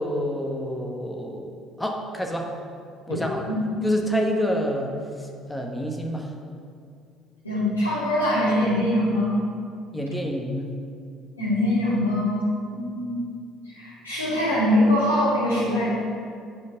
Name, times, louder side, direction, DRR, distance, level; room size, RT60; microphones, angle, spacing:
voice 1, 0.0-2.5 3.1-3.4 3.8-4.9 5.5-6.3 9.9-10.7, equal, 10° left, 2 dB, 1.3 m, -27 dB
voice 2, 7.4-9.4 11.4-13.2 13.6-15.9, left 1 dB, 85° left, -14 dB, 2.3 m, -23 dB
9.4 x 5.2 x 6.6 m, 2.3 s
figure-of-eight pair, 55°, 0 cm